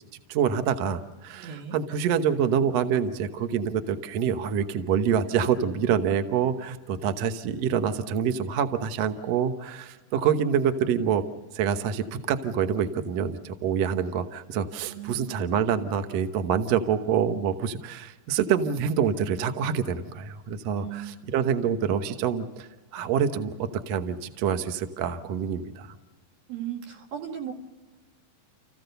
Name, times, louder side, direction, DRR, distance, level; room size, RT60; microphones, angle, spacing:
voice 1, 0.3-11.2 11.5-22.7 22.9-25.9, right 8 dB, 65° right, 8 dB, 1.7 m, -26 dB
voice 2, 1.3-1.8 14.9-15.5 20.8-21.2 26.5-27.5, right 9 dB, 90° right, 2 dB, 4.0 m, -37 dB
29.5 x 15.5 x 6.8 m, 1.2 s
omnidirectional pair, 4.2 m